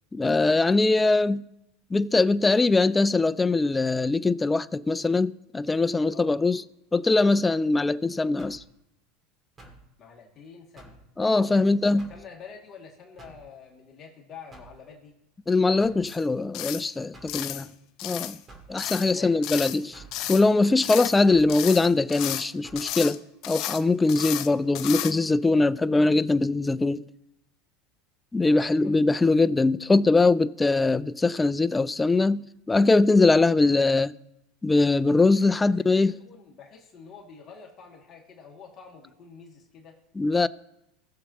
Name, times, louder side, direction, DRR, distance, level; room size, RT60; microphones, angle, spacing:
voice 1, 0.1-1.4 1.9-6.6 6.9-8.6 11.2-12.1 15.5-17.6 18.0-18.4 18.7-20.0 20.3-23.2 23.5-27.0 28.3-34.1 34.6-36.1 40.2-40.5, left 3 dB, 15° left, 0.4 m, -22 dB
sound 1, 8.4-8.7 9.6-9.9 10.8-11.1 12.0-12.3 13.2-13.5 14.5-14.8 15.8-16.1 17.1-17.4 18.5-18.7 19.9-20.2 21.3-21.5 22.6-22.9, right 2 dB, 20° right, 2.3 m, -49 dB
voice 2, 10.0-15.2 17.3-17.7 19.1-19.4 24.2-24.5 28.4-28.9 35.3-40.0, left 6 dB, 35° left, 2.2 m, -47 dB
sound 2, 16.1-16.2 16.5-16.9 17.3-17.7 18.0-18.4 18.8-19.1 19.4-19.8 20.1-20.5 20.8-21.2 21.5-22.5 22.8-23.2 23.4-23.8 24.1-24.5 24.7-25.1, left 13 dB, 55° left, 0.7 m, -33 dB
20.0 x 7.0 x 2.9 m
supercardioid pair, 105°, 0 cm